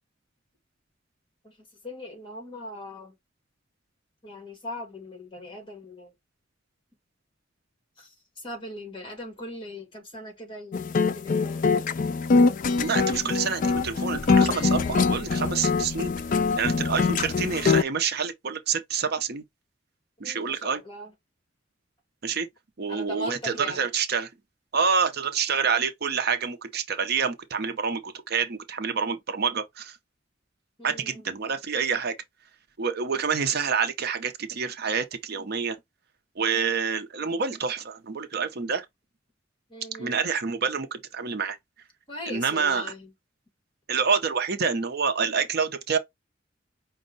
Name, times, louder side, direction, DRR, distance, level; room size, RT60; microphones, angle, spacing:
voice 1, 1.4-3.1 4.2-6.1 8.0-11.7 20.2-21.2 22.9-23.9 30.8-31.4 36.5-36.9 39.7-40.2 42.1-43.1, left 1 dB, 25° left, 1.6 m, -40 dB
sound 1, 10.7-17.8, left 4 dB, 45° left, 0.4 m, -23 dB
voice 2, 12.8-19.4 20.2-20.8 22.2-22.5 22.8-24.3 24.7-30.0 30.8-32.1 32.8-35.8 36.4-38.9 40.0-41.6 42.3-42.9 43.9-46.0, right 6 dB, 55° right, 0.6 m, -27 dB
5.3 x 2.2 x 3.8 m
head